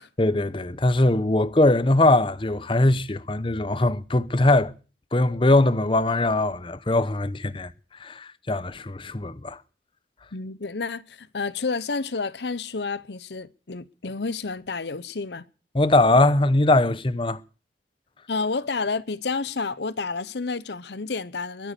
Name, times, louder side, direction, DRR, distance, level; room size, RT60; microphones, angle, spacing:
voice 1, 0.2-4.7 5.1-7.7 8.0-9.6 15.7-17.4, left 2 dB, 30° left, 0.8 m, -21 dB
voice 2, 10.3-15.4 18.3-21.7, left 4 dB, 75° left, 0.8 m, -30 dB
22.5 x 9.3 x 6.9 m
head